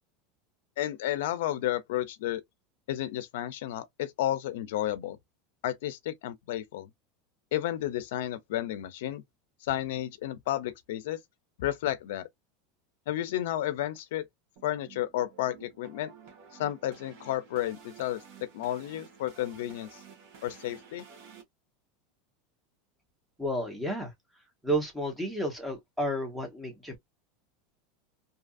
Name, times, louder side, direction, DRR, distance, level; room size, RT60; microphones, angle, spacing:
voice 1, 0.8-2.4 2.9-5.2 5.6-6.9 7.5-9.2 9.6-11.2 11.6-12.3 13.1-14.3 14.6-16.1 16.5-20.0 20.4-21.1, left 13 dB, 80° left, 0.4 m, -32 dB
sound 1, 14.6-21.4, right 6 dB, 50° right, 1.1 m, -52 dB
voice 2, 23.4-24.1 24.6-27.0, right 1 dB, 5° right, 0.9 m, -31 dB
2.7 x 2.5 x 2.3 m
supercardioid pair, 165°, 0 cm